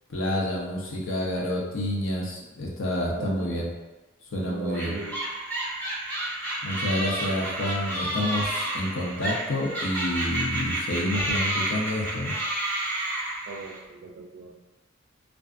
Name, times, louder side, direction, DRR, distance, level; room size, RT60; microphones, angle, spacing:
voice 1, 0.1-3.7 4.3-4.9 6.6-12.3, left 1 dB, 75° left, -3 dB, 0.6 m, -28 dB
voice 2, 3.2-3.7 4.5-5.2 13.5-14.5, right 4 dB, 60° right, 1 dB, 0.4 m, -38 dB
sound 1, 4.7-13.8, right 1 dB, 10° left, 0.7 m, -30 dB
2.4 x 2.3 x 2.4 m, 1.1 s
head